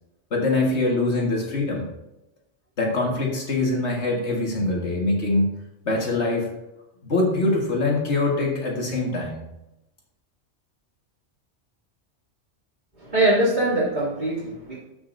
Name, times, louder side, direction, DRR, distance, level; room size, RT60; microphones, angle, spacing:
voice 1, 0.3-1.9 2.8-5.5 5.9-6.5 7.0-9.4, left 2 dB, 70° left, -1 dB, 2.0 m, -23 dB
voice 2, 13.0-14.8, right 1 dB, 40° right, -11 dB, 3.3 m, -22 dB
14.0 x 6.0 x 2.6 m, 0.92 s
omnidirectional pair, 1.2 m